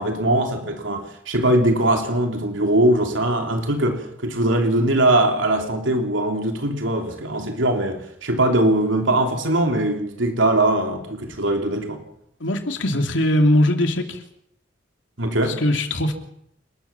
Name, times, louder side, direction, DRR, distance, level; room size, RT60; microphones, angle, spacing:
voice 1, 0.0-12.0 15.2-15.6, right 1 dB, 90° right, 4 dB, 3.3 m, -21 dB
voice 2, 12.4-14.2 15.5-16.1, left 1 dB, 80° left, 5 dB, 3.0 m, -20 dB
29.0 x 13.5 x 7.1 m, 0.75 s
head